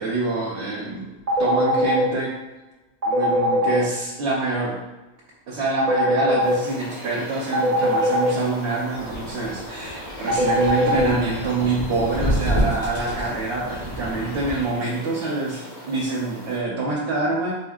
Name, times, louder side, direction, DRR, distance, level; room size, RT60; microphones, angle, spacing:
voice 1, 0.0-2.4 3.1-4.8 5.5-17.5, right 3 dB, 80° right, -4 dB, 0.9 m, -26 dB
sound 1, 1.3-2.0 3.0-3.8 5.8-6.5 7.5-8.3 10.3-11.0, right 1 dB, 40° right, 0.8 m, -20 dB
sound 2, 6.4-16.6, equal, 45° left, 1.2 m, -39 dB
sound 3, 8.9-14.6, equal, 85° left, 1.6 m, -29 dB
4.1 x 2.5 x 2.3 m, 1.1 s
omnidirectional pair, 1.1 m